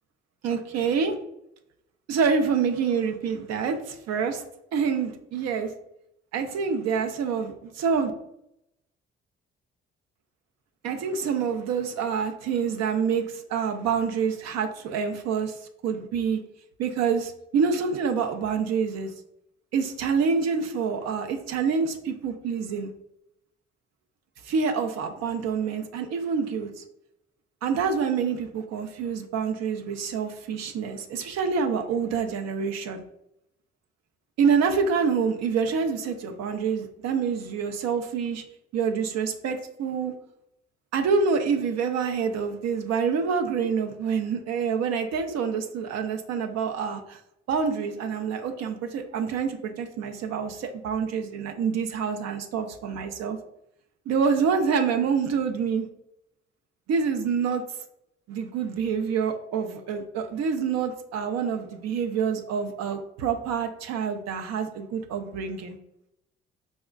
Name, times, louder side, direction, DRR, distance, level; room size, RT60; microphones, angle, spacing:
voice 1, 0.4-1.2 2.1-4.4 4.7-5.7 6.3-8.1 10.8-15.6 15.8-16.4 16.8-19.1 19.7-22.9 24.4-26.8 27.6-33.0 34.4-38.4 38.7-40.1 40.9-47.2 47.5-53.4 54.1-55.9 56.9-57.6 58.3-65.8, right 6 dB, 60° right, 5 dB, 0.5 m, -27 dB
5.1 x 2.1 x 2.3 m, 0.80 s
hypercardioid pair, 45°, 31 cm